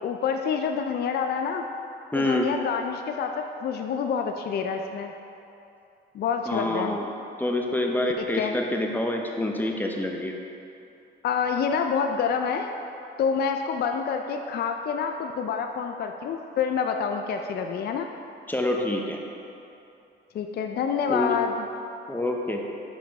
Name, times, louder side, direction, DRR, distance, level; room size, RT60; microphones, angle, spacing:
voice 1, 0.0-1.7 2.2-5.1 6.1-7.0 8.2-8.5 11.2-12.7 13.2-18.1 20.3-21.7, left 6 dB, 55° left, 4 dB, 0.4 m, -27 dB
voice 2, 2.1-2.5 6.5-7.1 7.4-10.3 18.5-19.2 21.1-21.4 22.1-22.6, left 1 dB, 10° left, 1 dB, 0.7 m, -27 dB
5.3 x 5.1 x 4.5 m, 2.8 s
cardioid pair, 90°, 20 cm